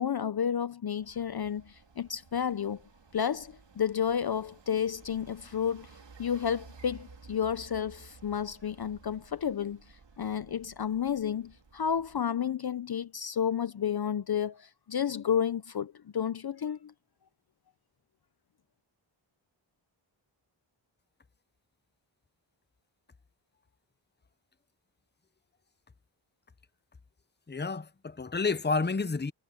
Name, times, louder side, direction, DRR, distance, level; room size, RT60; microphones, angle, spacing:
voice 1, 0.0-2.8 3.1-5.9 6.2-9.8 10.2-16.9, left 8 dB, 50° left, 0.7 m, -31 dB
sound 1, 1.0-12.2, right 4 dB, 60° right, 2.9 m, -55 dB
voice 2, 27.5-29.3, left 4 dB, 20° left, 0.8 m, -30 dB
cardioid pair, 50°, 48 cm